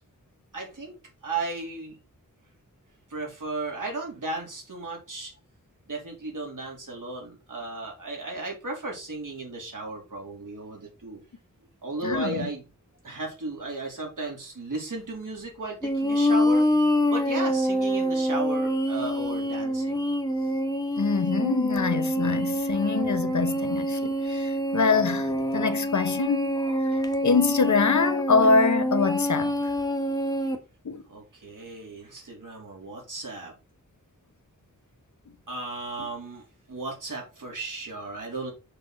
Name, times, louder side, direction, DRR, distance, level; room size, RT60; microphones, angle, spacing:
voice 1, 0.5-1.0 1.2-2.0 3.1-5.3 5.9-11.2 11.8-12.6 13.0-20.0 31.1-33.5 35.5-38.5, right 3 dB, 70° right, 3.3 m, -35 dB
voice 2, 12.0-12.5 21.0-29.7 30.8-31.0, left 4 dB, 60° left, 0.9 m, -25 dB
sound 1, 15.8-30.6, equal, 10° left, 1.3 m, -26 dB
6.6 x 5.9 x 4.0 m
wide cardioid pair, 95°, 33 cm